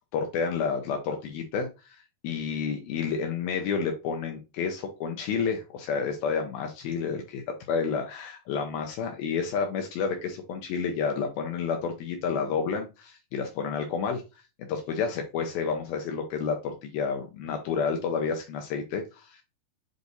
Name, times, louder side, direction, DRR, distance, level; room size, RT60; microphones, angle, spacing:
voice 1, 0.1-14.2 14.7-19.4, left 5 dB, 75° left, 4 dB, 2.4 m, -30 dB
8.3 x 3.3 x 4.0 m, 0.28 s
omnidirectional pair, 5.0 m